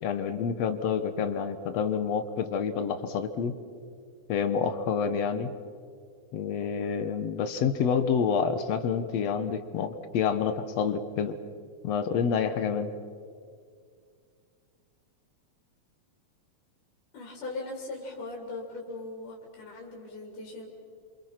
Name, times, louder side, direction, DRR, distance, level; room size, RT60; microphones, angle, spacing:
voice 1, 0.0-3.5 4.3-5.5 6.3-11.4 11.8-12.9, left 6 dB, 65° left, 10 dB, 2.1 m, -28 dB
voice 2, 17.1-20.7, left 2 dB, 85° left, -1 dB, 4.6 m, -39 dB
28.5 x 26.0 x 5.9 m, 2.2 s
omnidirectional pair, 3.5 m